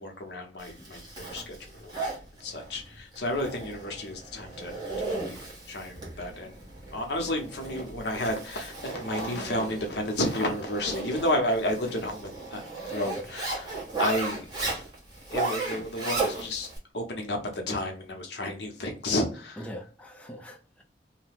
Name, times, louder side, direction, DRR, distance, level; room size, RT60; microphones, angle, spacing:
voice 1, 0.0-1.9 2.4-5.4 5.7-6.5 6.9-12.6 12.9-14.5 15.3-19.6, left 1 dB, 75° left, 0.8 m, -31 dB
Zipper (clothing), 0.6-16.8, right 3 dB, 25° right, 1.1 m, -35 dB
voice 2, 19.6-20.8, equal, 5° left, 0.4 m, -42 dB
2.7 x 2.1 x 3.4 m
head